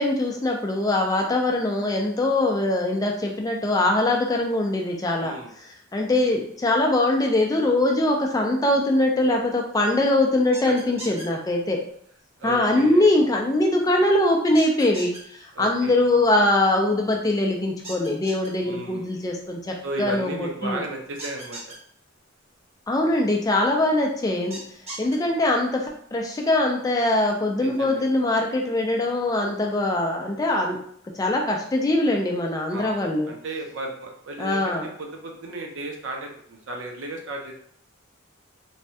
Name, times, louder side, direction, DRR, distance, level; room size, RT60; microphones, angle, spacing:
voice 1, 0.0-5.3 5.9-11.8 12.4-20.8 22.9-24.6 25.0-25.9 26.1-30.8 31.2-33.3 34.4-34.9, left 1 dB, 20° left, 1 dB, 0.4 m, -22 dB
voice 2, 5.2-5.5 10.7-10.8 11.1-11.2 12.4-13.1 15.5-16.1 18.6-19.2 19.8-21.6 27.6-28.1 32.7-37.5, right 2 dB, 65° right, 1 dB, 0.6 m, -35 dB
sound 1, 10.5-11.2 14.5-15.2 17.8-18.5 21.2-21.7 24.5-25.1, right 1 dB, 30° right, 0.8 m, -37 dB
3.1 x 2.2 x 2.7 m, 0.63 s
head